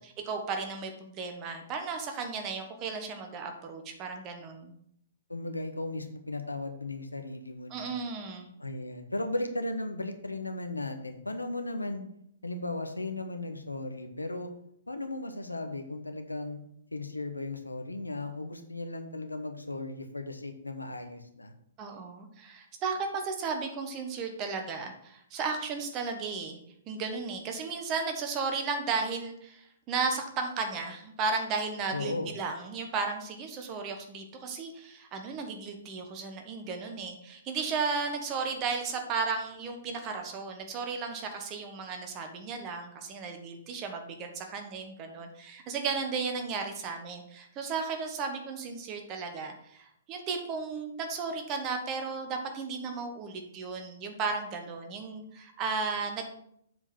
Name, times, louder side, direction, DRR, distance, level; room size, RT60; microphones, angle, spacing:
voice 1, 0.0-4.7 7.7-8.5 21.8-26.6 26.9-56.3, right 4 dB, 30° right, 5 dB, 1.3 m, -34 dB
voice 2, 5.3-7.9 8.6-12.0 12.4-14.5 14.9-16.6 16.9-21.5 31.9-32.3, left 2 dB, 85° left, 7 dB, 1.0 m, -36 dB
7.6 x 4.8 x 5.4 m, 0.72 s
figure-of-eight pair, 120°, 0 cm